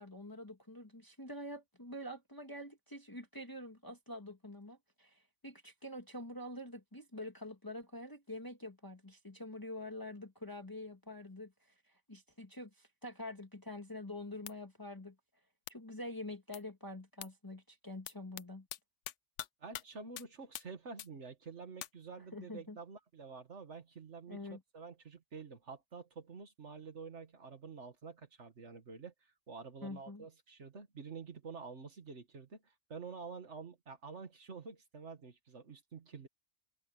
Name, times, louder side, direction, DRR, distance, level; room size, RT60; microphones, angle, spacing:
voice 1, 0.0-15.2 15.7-18.7 22.3-22.8 24.3-24.6 29.8-30.3, left 1 dB, 15° left, 1.8 m, -46 dB
sound 1, 14.5-14.6 15.7-15.8 16.5-16.6 17.2-17.3 18.1-18.4 18.7-18.8 19.0-19.5 19.7-19.8 20.2-20.3 20.5-20.6 21.0-21.1 21.8-21.9, left 12 dB, 80° left, 0.9 m, -43 dB
voice 2, 19.6-24.4 24.7-36.3, right 5 dB, 75° right, 2.0 m, -49 dB
open air
omnidirectional pair, 1.2 m